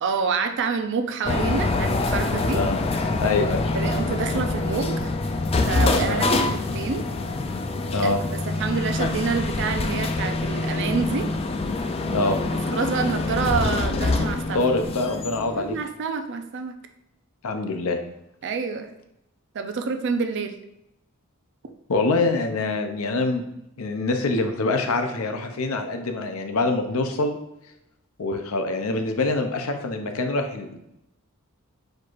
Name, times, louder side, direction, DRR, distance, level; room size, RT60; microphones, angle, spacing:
voice 1, 0.0-2.6 3.7-5.1 5.7-7.0 8.0-8.1 8.5-11.3 12.1-12.3 12.7-14.6 15.5-16.8 18.4-18.9 19.5-20.5, right 5 dB, 55° right, 7 dB, 0.5 m, -27 dB
sound 1, 1.3-15.8, left 2 dB, 30° left, 0.3 m, -25 dB
voice 2, 3.2-3.6 6.0-6.3 7.9-8.2 12.1-12.4 14.5-15.8 17.4-18.0 21.9-23.4 23.8-27.4 28.2-30.8, left 3 dB, 75° left, 6 dB, 0.6 m, -25 dB
4.4 x 2.5 x 4.5 m, 0.81 s
head